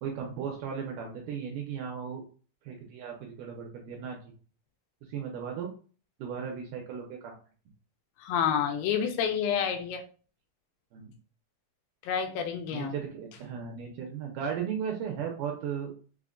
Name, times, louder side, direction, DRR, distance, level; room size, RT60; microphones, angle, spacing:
voice 1, 0.0-2.2 2.6-4.3 5.1-5.7 6.2-7.4 10.9-11.1 12.7-15.9, right 7 dB, 80° right, 1 dB, 2.0 m, -36 dB
voice 2, 8.2-10.0 12.0-12.9, left 8 dB, 80° left, 6 dB, 2.2 m, -29 dB
5.6 x 2.1 x 2.4 m, 0.39 s
omnidirectional pair, 4.2 m